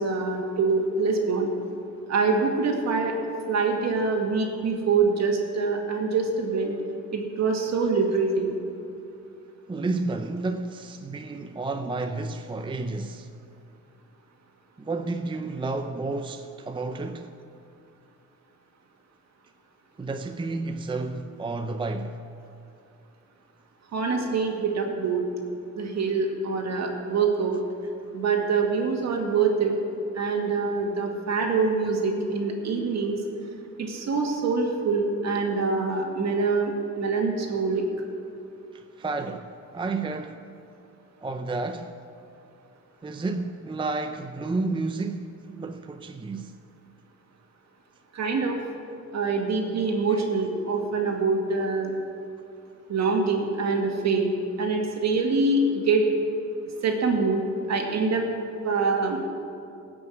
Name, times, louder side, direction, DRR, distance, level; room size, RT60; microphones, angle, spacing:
voice 1, 0.0-1.5 2.1-3.1 3.5-6.7 7.1-8.5 23.9-25.3 25.7-27.6 28.1-29.7 30.1-33.2 33.8-37.8 48.1-48.6 49.1-52.0 52.9-54.3 54.6-56.0 56.8-57.4 57.7-58.3 58.6-59.2, right 4 dB, 60° right, 2.2 m, -25 dB
voice 2, 9.7-13.3 14.8-17.3 20.0-22.2 38.7-40.5 41.2-41.9 43.0-46.5 50.1-50.2, right 3 dB, 15° right, 0.6 m, -31 dB
17.5 x 6.2 x 7.7 m
cardioid pair, 90°, 30 cm